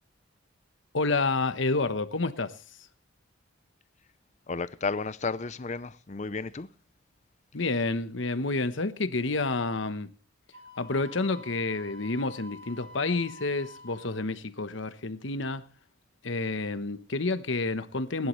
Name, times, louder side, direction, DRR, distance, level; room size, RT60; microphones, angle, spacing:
voice 1, 0.9-2.6 7.5-10.1 10.8-15.6 16.2-18.3, left 3 dB, 70° left, 1.1 m, -29 dB
voice 2, 4.5-6.7, left 4 dB, 35° left, 0.6 m, -32 dB
Wind instrument woodwind instrument, 10.5-14.3, left 1 dB, 85° right, 4.4 m, -48 dB
20.5 x 11.5 x 3.2 m
head